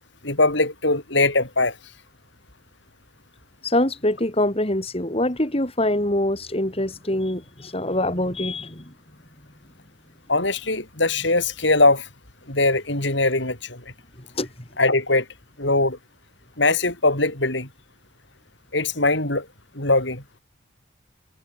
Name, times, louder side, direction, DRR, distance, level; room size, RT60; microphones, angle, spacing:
voice 1, 0.2-1.7 10.3-12.0 12.5-13.8 14.8-15.2 15.6-16.0 16.6-17.7 18.7-19.4 19.8-20.2, left 2 dB, 60° left, 5.9 m, -21 dB
voice 2, 3.6-8.8 14.4-14.5, left 1 dB, 30° left, 3.9 m, -24 dB
head